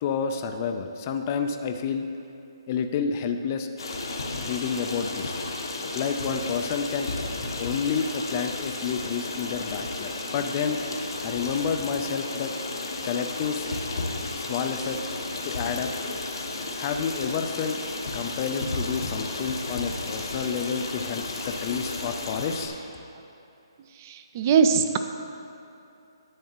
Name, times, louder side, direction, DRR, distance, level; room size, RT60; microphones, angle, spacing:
voice 1, 0.0-2.1 2.7-3.7 4.4-5.3 5.9-7.1 7.6-10.8 11.2-12.5 13.0-13.7 14.3-15.0 15.4-15.9 16.7-17.8 18.1-22.7, left 6 dB, 35° left, 6 dB, 0.4 m, -29 dB
Stream, 3.8-22.7, left 2 dB, 75° left, 1.2 m, -33 dB
voice 2, 24.0-25.0, right 6 dB, 35° right, 9 dB, 0.4 m, -21 dB
10.5 x 7.7 x 2.9 m, 2.8 s
hypercardioid pair, 150°, 3 cm